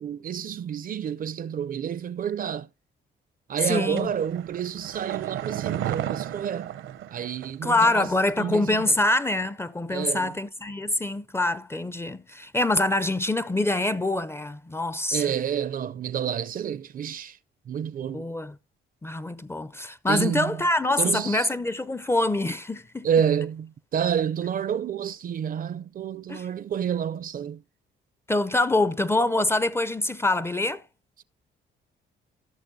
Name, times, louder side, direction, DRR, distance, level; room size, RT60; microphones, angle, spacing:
voice 1, 0.0-2.7 3.5-6.7 7.1-8.1 8.4-8.9 9.9-10.3 15.1-17.4 17.7-18.3 20.1-20.5 21.0-21.5 23.0-27.6, right 8 dB, 45° right, 0.4 m, -29 dB
voice 2, 3.6-4.1 7.6-15.2 18.1-18.5 19.0-23.1 26.3-26.5 28.3-30.8, left 2 dB, 10° left, 0.4 m, -25 dB
sound 1, 4.0-7.7 7.9-8.0, right 11 dB, 80° right, 0.7 m, -33 dB
16.0 x 6.4 x 2.6 m
cardioid pair, 90°, 20 cm